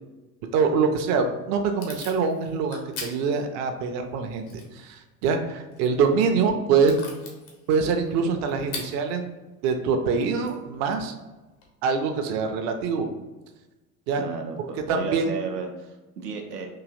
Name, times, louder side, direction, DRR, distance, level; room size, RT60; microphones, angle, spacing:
voice 1, 0.5-4.5 4.7-7.0 7.7-9.3 9.6-11.1 11.8-13.1 14.1-14.2 14.9-15.4, right 5 dB, 40° right, 5 dB, 0.5 m, -24 dB
Packing tape duct tape / Tearing, 0.9-11.7, left 4 dB, 65° left, 1.0 m, -45 dB
voice 2, 14.2-16.7, right 4 dB, 85° right, 3 dB, 0.6 m, -33 dB
3.8 x 2.7 x 2.5 m, 1.1 s
figure-of-eight pair, 65°, 46 cm